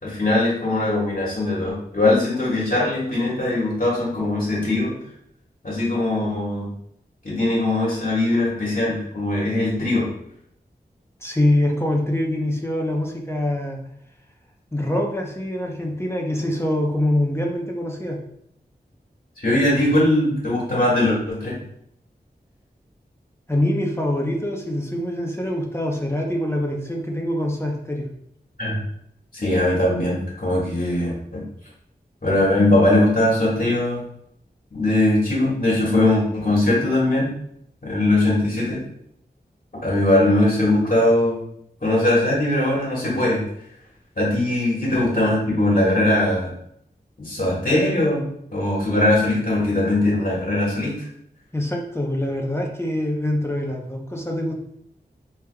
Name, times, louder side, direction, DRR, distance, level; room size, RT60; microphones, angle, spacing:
voice 1, 0.0-5.0 5.6-6.7 7.2-10.1 19.4-21.5 28.6-28.8 29.3-31.4 32.2-34.0 34.7-37.3 37.8-38.8 39.8-41.4 41.8-43.4 44.2-46.5 47.2-48.2 48.5-51.0, left 1 dB, 50° left, -6 dB, 1.6 m, -20 dB
voice 2, 11.2-13.8 14.7-18.2 23.5-28.1 51.5-54.6, left 1 dB, 15° left, 0 dB, 0.7 m, -24 dB
4.8 x 3.4 x 2.3 m, 0.73 s
wide cardioid pair, 50°, 17 cm